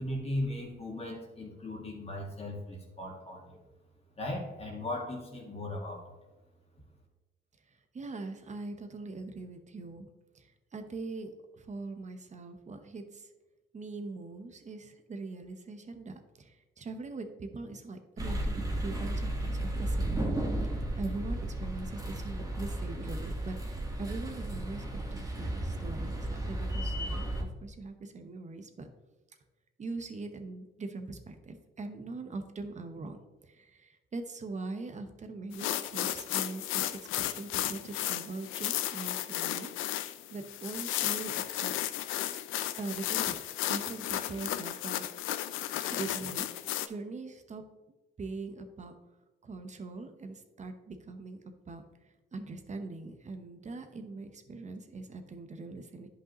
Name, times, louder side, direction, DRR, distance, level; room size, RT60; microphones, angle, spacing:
voice 1, 0.0-3.6 4.2-6.0, left 1 dB, 30° left, -2 dB, 1.9 m, -37 dB
voice 2, 7.7-10.1 10.3-13.3 13.7-28.9 29.8-33.2 33.4-39.7 40.0-41.7 42.7-43.3 43.7-45.1 45.9-47.6 48.2-48.9 49.4-56.1, right 3 dB, 35° right, 7 dB, 1.0 m, -42 dB
sound 1, 18.2-27.4, right 1 dB, 20° right, 1.6 m, -34 dB
sound 2, 35.5-46.9, left 13 dB, 90° left, 0.5 m, -34 dB
11.0 x 5.4 x 3.0 m, 1.1 s
cardioid pair, 90°, 20 cm